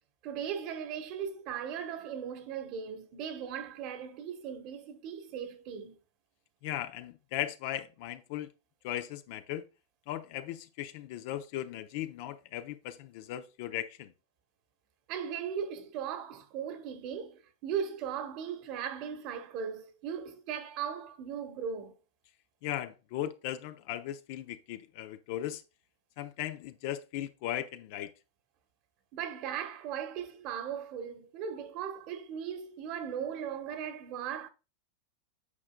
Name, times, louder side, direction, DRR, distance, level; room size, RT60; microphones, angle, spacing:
voice 1, 0.2-6.0 15.1-22.0 29.1-34.5, right 8 dB, 50° right, 1.2 m, -38 dB
voice 2, 6.6-8.5 8.8-9.6 10.1-14.1 22.6-25.6 26.2-28.1, left 12 dB, 60° left, 0.7 m, -37 dB
8.4 x 5.0 x 2.2 m
hypercardioid pair, 120°, 0 cm